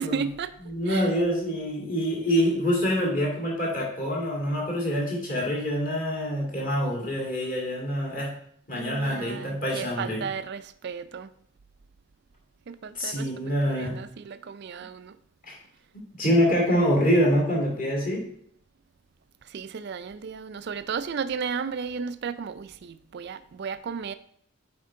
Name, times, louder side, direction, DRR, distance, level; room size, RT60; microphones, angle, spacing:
voice 1, 0.0-0.6 0.9-1.1 8.7-11.3 12.7-15.1 19.4-24.1, right 6 dB, 50° right, 0.3 m, -34 dB
voice 2, 0.7-8.3 8.7-10.2 12.9-14.0 15.5-15.6 16.2-18.2, equal, 35° left, 2.3 m, -25 dB
9.4 x 4.4 x 3.7 m
head